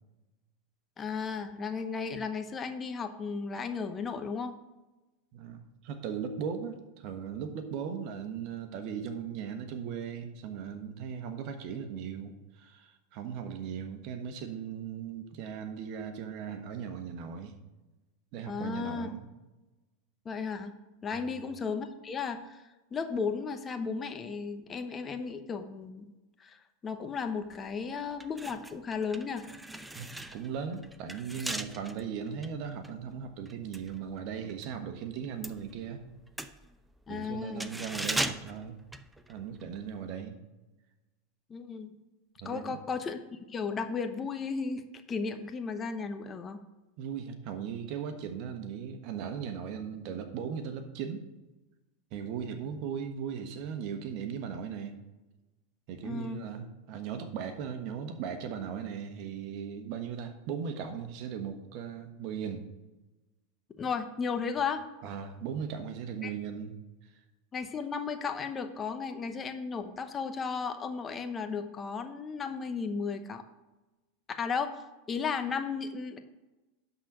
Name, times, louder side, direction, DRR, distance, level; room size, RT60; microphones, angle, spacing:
voice 1, 1.0-4.5 18.5-19.1 20.2-20.7 21.0-26.1 26.4-29.4 37.1-37.7 41.5-41.9 42.4-44.8 45.1-46.6 56.0-56.5 63.8-64.8 66.2-66.3 67.5-73.4 74.3-74.8 75.1-76.2, left 5 dB, 25° left, 8 dB, 0.8 m, -35 dB
voice 2, 5.3-17.5 18.3-19.3 21.1-21.4 29.9-36.0 37.1-38.8 39.3-40.4 42.4-42.8 47.0-51.2 52.1-54.9 55.9-62.6 65.0-66.7 67.0-67.1, right 7 dB, 55° right, 7 dB, 1.2 m, -38 dB
sound 1, 27.5-27.7 28.1-34.7 35.0-39.7 40.0-40.1, right 1 dB, 5° right, 0.5 m, -39 dB
11.0 x 4.0 x 6.2 m, 1.1 s
hypercardioid pair, 105°, 0 cm